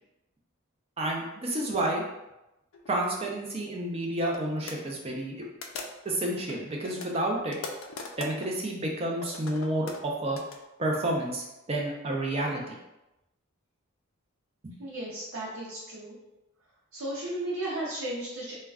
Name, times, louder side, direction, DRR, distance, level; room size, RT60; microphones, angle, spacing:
voice 1, 1.0-2.0 2.9-5.4 6.0-7.6 8.2-10.4 10.8-12.8 14.6-14.7, right 1 dB, 30° right, -1 dB, 0.4 m, -30 dB
sound 1, 2.7-2.9 3.7-3.8 4.2-4.4 4.7-4.8 5.6-6.2 6.5-8.5 9.1-10.6, left 4 dB, 60° left, 0.4 m, -40 dB
voice 2, 14.8-16.2 16.9-18.5, right 1 dB, 85° right, -5 dB, 0.5 m, -34 dB
2.3 x 2.1 x 3.4 m, 0.94 s
head